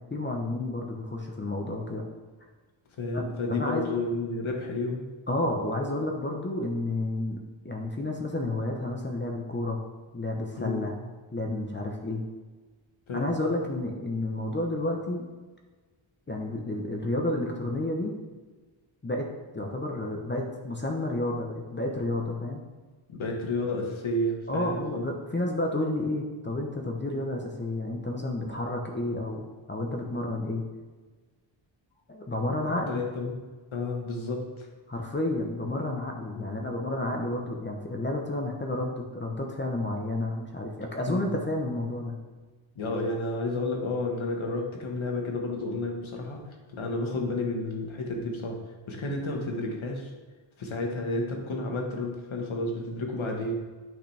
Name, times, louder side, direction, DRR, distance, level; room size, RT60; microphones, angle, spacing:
voice 1, 0.1-2.0 3.1-3.2 3.5-3.9 5.3-9.8 10.1-10.9 11.3-12.2 13.1-15.2 16.3-18.1 19.0-19.3 19.5-22.6 24.5-30.6 32.1-33.0 34.9-42.2, left 1 dB, 20° left, 1 dB, 0.9 m, -31 dB
voice 2, 3.0-5.0 10.6-10.8 13.1-13.3 23.1-25.0 27.1-27.2 32.7-33.4 33.7-34.7 36.3-36.5 41.1-41.3 42.7-46.4 46.7-48.6 48.9-50.1 50.6-53.5, left 2 dB, 70° left, 1 dB, 1.6 m, -31 dB
8.9 x 5.8 x 3.4 m, 1.3 s
wide cardioid pair, 125°, 49 cm